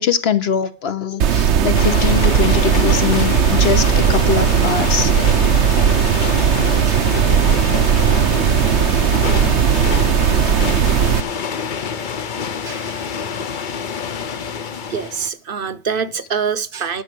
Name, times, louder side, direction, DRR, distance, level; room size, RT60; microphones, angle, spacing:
voice 1, 0.0-5.1, left 7 dB, 65° left, 1.1 m, -21 dB
sound 1, 1.2-11.2, right 8 dB, 85° right, 1.0 m, -16 dB
sound 2, 1.7-15.3, left 6 dB, 50° left, 0.8 m, -27 dB
voice 2, 12.6-13.1 14.9-17.0, right 6 dB, 55° right, 0.9 m, -25 dB
11.0 x 5.6 x 7.7 m
omnidirectional pair, 1.1 m